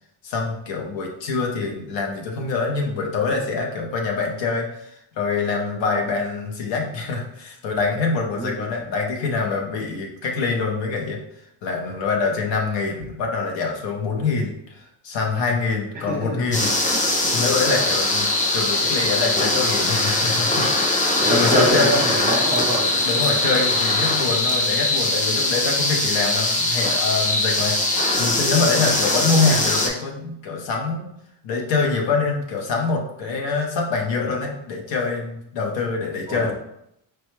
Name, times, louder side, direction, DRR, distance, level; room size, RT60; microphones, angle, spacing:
voice 1, 0.2-11.2 11.6-16.7 17.2-18.3 18.5-20.7 21.0-22.0 23.0-31.1 31.4-36.5, left 4 dB, 85° left, 2 dB, 0.9 m, -25 dB
voice 2, 8.3-8.6 16.1-16.4 16.9-17.0 21.2-22.9 36.3-36.5, right 1 dB, 20° right, -2 dB, 0.7 m, -24 dB
sound 1, 16.5-29.9, left 2 dB, 20° left, 0.3 m, -21 dB
4.6 x 2.2 x 3.1 m, 0.77 s
cardioid pair, 165°, 43 cm